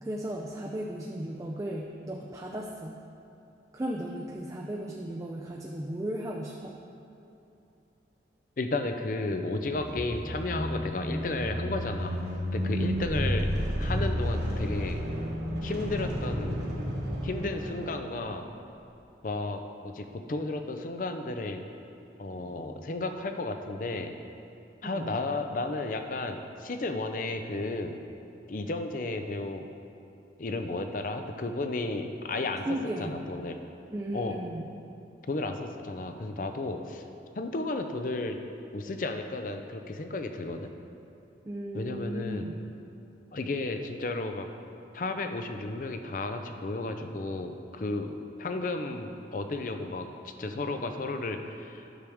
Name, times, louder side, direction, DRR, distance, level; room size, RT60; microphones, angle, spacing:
voice 1, 0.0-2.9 3.7-6.8 13.0-13.3 24.8-25.1 32.6-33.2 33.9-34.6 41.4-42.5, right 1 dB, 20° right, -1 dB, 0.4 m, -35 dB
voice 2, 8.6-15.0 15.6-16.6 17.2-18.4 19.2-21.6 22.2-24.1 24.8-28.0 28.5-29.7 30.4-32.7 33.0-33.6 34.1-34.4 35.3-37.0 37.4-38.4 38.7-40.7 41.7-42.5 43.3-44.5 44.9-50.1 50.4-51.9, left 2 dB, 45° left, 6 dB, 0.5 m, -33 dB
sound 1, 9.6-18.4, equal, 65° right, 1.4 m, -32 dB
9.9 x 6.4 x 3.5 m, 2.8 s
head